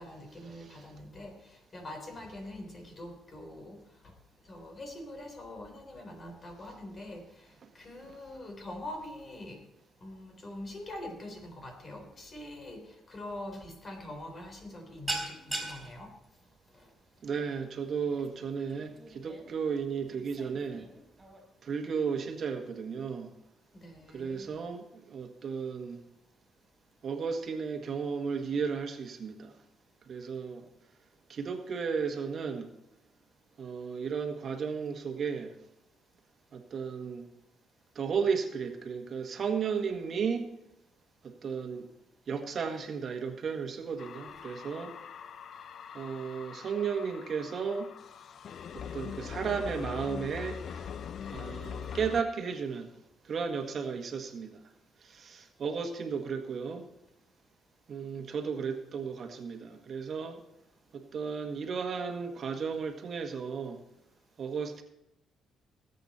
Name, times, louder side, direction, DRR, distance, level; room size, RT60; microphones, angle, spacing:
voice 1, 0.0-4.1 4.4-9.6 10.0-16.1 16.7-16.9 23.7-24.6, left 1 dB, 40° left, 4 dB, 3.7 m, -44 dB
voice 2, 0.5-0.9 17.2-20.8 21.6-23.3 24.1-26.0 27.0-29.5 30.1-30.7 31.3-32.7 33.6-35.5 36.5-37.2 37.9-40.5 41.2-41.9 42.3-44.9 45.9-47.9 48.7-50.9 51.3-52.9 53.2-54.6 55.0-56.8 57.9-60.4 60.9-63.8 64.4-64.8, right 6 dB, 55° right, 5 dB, 1.6 m, -34 dB
sound 1, 13.4-13.7 14.0-14.3 14.5-21.4, right 2 dB, 20° right, 3.9 m, -41 dB
sound 2, 44.0-52.2, left 7 dB, 60° left, 0.5 m, -42 dB
19.0 x 8.3 x 4.2 m, 0.86 s
cardioid pair, 90°, 0 cm